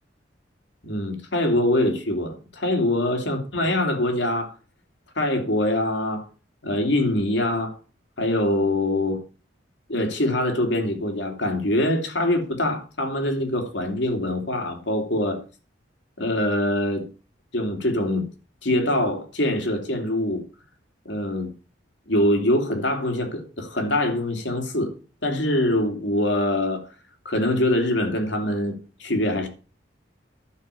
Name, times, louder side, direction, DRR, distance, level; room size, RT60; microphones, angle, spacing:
voice 1, 0.8-4.5 5.2-6.3 6.6-7.8 8.2-9.2 9.9-15.4 16.2-17.1 17.5-18.3 18.6-20.4 21.0-21.5 22.1-24.9 25.2-26.9 27.2-29.5, left 1 dB, 75° left, 2.9 m, -24 dB
12.0 x 6.2 x 6.8 m
head